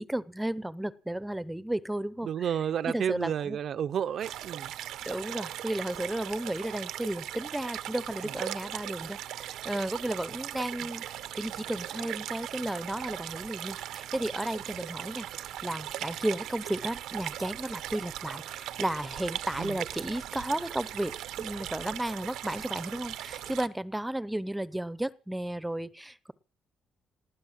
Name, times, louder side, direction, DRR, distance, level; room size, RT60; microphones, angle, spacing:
voice 1, 0.0-2.5 2.9-3.6 5.1-26.3, right 1 dB, 5° right, 0.8 m, -34 dB
voice 2, 2.2-4.7 5.2-5.3 19.6-19.8, right 9 dB, 65° right, 0.7 m, -31 dB
sound 1, 4.2-23.7, right 12 dB, 90° right, 0.9 m, -39 dB
19.5 x 10.0 x 7.5 m
cardioid pair, 90°, 0 cm